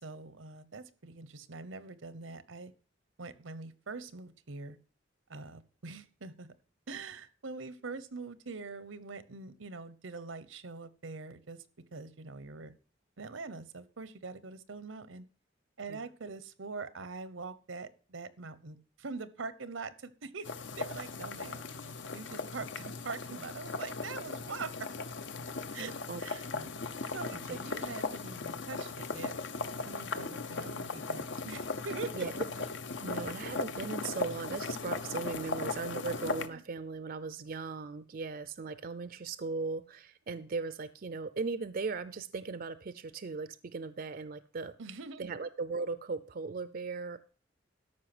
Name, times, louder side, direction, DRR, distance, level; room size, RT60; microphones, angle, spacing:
voice 1, 0.0-2.7 3.2-4.8 5.3-6.5 6.9-11.6 11.9-12.7 13.2-15.3 15.8-20.5 20.8-24.9 25.7-26.5 27.1-29.3 29.9-32.3 36.5-36.6 44.8-45.4, right 4 dB, 85° right, 16 dB, 0.9 m, -43 dB
sound 1, 20.4-36.5, left 4 dB, 65° left, 0.8 m, -38 dB
voice 2, 25.8-26.2 26.5-26.7 27.3-28.0 32.1-32.4 33.0-44.7 45.2-47.2, right 4 dB, 50° right, 14 dB, 0.5 m, -38 dB
13.0 x 5.7 x 6.0 m, 0.40 s
head